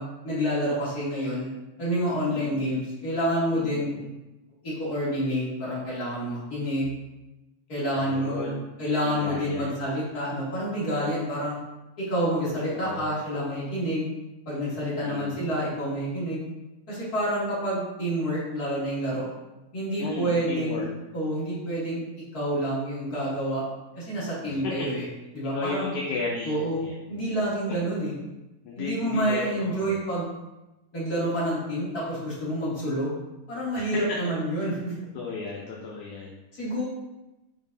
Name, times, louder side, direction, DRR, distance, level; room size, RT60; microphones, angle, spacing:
voice 1, 0.0-1.5 1.8-3.9 4.6-6.9 7.7-8.5 8.8-11.6 12.1-14.1 14.5-16.4 16.9-19.3 19.7-20.8 21.1-22.0 22.3-23.6 23.9-25.0 25.3-25.9 26.4-26.8 27.1-28.1 28.8-30.3 30.9-33.1 33.5-34.9 36.5-36.8, equal, 30° left, -9 dB, 2.1 m, -28 dB
voice 2, 2.3-2.8 3.5-4.1 8.0-8.6 9.0-9.7 12.7-13.1 15.0-15.4 20.0-20.9 24.5-24.9 25.5-27.0 28.6-30.0 33.7-34.0 35.1-36.4, left 4 dB, 90° left, -1 dB, 1.7 m, -34 dB
7.6 x 4.6 x 2.7 m, 0.98 s
omnidirectional pair, 4.4 m